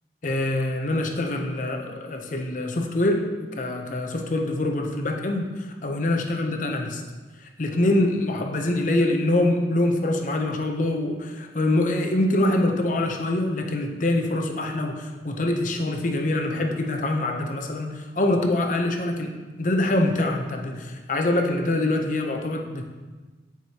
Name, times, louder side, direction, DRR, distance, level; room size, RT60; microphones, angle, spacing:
voice 1, 0.2-3.2 3.6-5.5 5.8-7.0 7.6-19.3 19.6-22.9, left 1 dB, 45° left, 3 dB, 0.6 m, -24 dB
7.7 x 4.8 x 2.8 m, 1.3 s
head